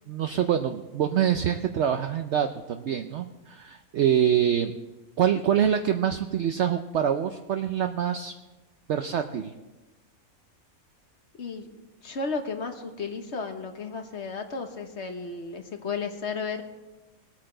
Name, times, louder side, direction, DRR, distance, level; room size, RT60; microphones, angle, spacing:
voice 1, 0.1-4.7 5.2-8.3 8.9-9.5, right 9 dB, 60° right, 6 dB, 0.8 m, -25 dB
voice 2, 11.4-11.7 12.0-16.6, left 4 dB, 55° left, 5 dB, 1.3 m, -33 dB
20.5 x 8.7 x 3.8 m, 1.1 s
omnidirectional pair, 1.5 m